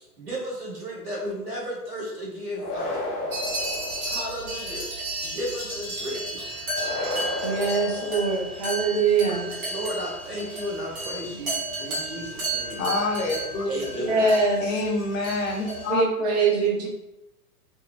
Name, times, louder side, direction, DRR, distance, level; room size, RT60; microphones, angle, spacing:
voice 1, 0.0-3.1 4.0-4.9 5.2-6.7 9.7-12.8 13.7-14.2, equal, 85° right, -4 dB, 1.4 m, -34 dB
sound 1, 2.6-4.6 6.7-8.8, left 2 dB, 25° left, 0.6 m, -33 dB
sound 2, 3.3-15.9, right 1 dB, 65° right, 1.4 m, -33 dB
voice 2, 7.4-9.5 11.3-11.4 14.0-14.8 15.9-16.9, right 4 dB, 30° right, -2 dB, 0.4 m, -23 dB
voice 3, 12.8-14.3 14.6-16.0 16.4-16.7, left 3 dB, 60° left, 1 dB, 0.8 m, -28 dB
3.5 x 2.0 x 2.3 m, 0.91 s
figure-of-eight pair, 115°, 46 cm